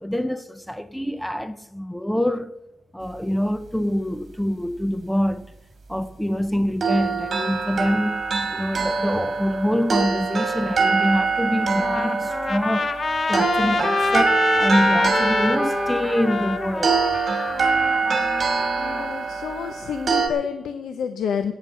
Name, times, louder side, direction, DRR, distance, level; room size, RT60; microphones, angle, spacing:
voice 1, 0.0-2.5 2.9-5.5 5.9-8.2 8.5-12.9 13.3-17.0, equal, ahead, 0.5 m, -25 dB
sound 1, 6.8-20.3, right 4 dB, 40° right, 2.9 m, -24 dB
Trumpet, 11.6-19.1, left 3 dB, 35° left, 0.7 m, -26 dB
voice 2, 18.7-21.5, left 7 dB, 75° left, 0.8 m, -29 dB
13.5 x 9.2 x 7.6 m
cardioid pair, 125°, 0 cm